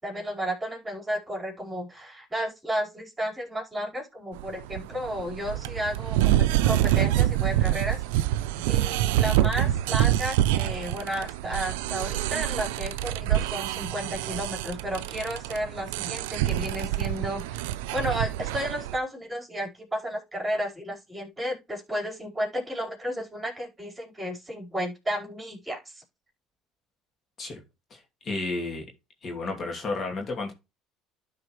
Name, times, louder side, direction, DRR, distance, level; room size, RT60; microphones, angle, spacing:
voice 1, 0.0-8.0 8.7-17.6 17.9-26.0, equal, 15° right, 4.4 m, -33 dB
sound 1, 4.4-19.0, right 13 dB, 90° right, 0.5 m, -26 dB
voice 2, 27.9-28.8 29.2-30.5, left 3 dB, 40° left, 2.5 m, -32 dB
12.5 x 4.2 x 3.1 m
supercardioid pair, 95°, 0 cm